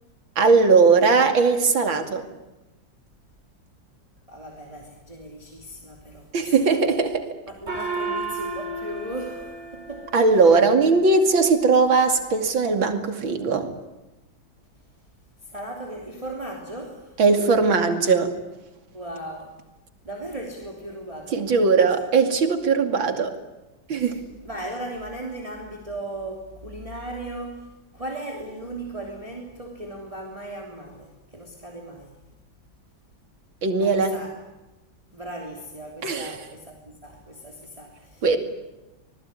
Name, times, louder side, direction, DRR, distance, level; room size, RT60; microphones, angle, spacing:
voice 1, 0.4-2.3 6.3-7.3 10.1-13.7 17.2-18.3 21.3-23.3 23.9-24.2 33.6-34.1 36.0-36.4 38.2-38.4, right 4 dB, 75° right, 6 dB, 3.3 m, -19 dB
voice 2, 4.3-6.7 7.5-10.1 15.4-17.2 18.9-19.6 20.0-21.8 24.0-27.7 27.9-32.1 33.8-34.3 35.1-38.2, right 1 dB, 15° right, 0 dB, 3.4 m, -37 dB
Gong, 7.7-10.6, right 3 dB, 30° right, 5.5 m, -32 dB
26.0 x 20.0 x 9.8 m, 1.0 s
omnidirectional pair, 2.1 m